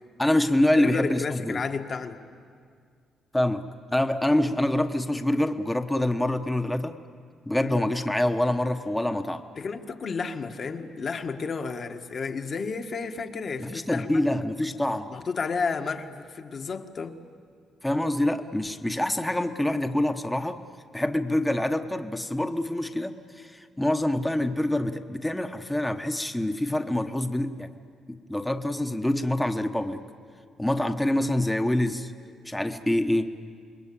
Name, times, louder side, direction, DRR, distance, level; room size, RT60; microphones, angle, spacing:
voice 1, 0.2-1.6 3.3-3.6 3.9-7.0 7.5-9.4 13.6-15.1 17.8-20.6 20.9-27.7 28.1-30.0 30.6-32.1 32.4-33.3, left 1 dB, 10° left, 7 dB, 1.1 m, -26 dB
voice 2, 0.8-2.2 7.6-7.9 9.6-14.2 15.1-17.2, left 5 dB, 45° left, 5 dB, 1.6 m, -32 dB
27.5 x 21.5 x 8.6 m, 2.1 s
cardioid pair, 90°, 0 cm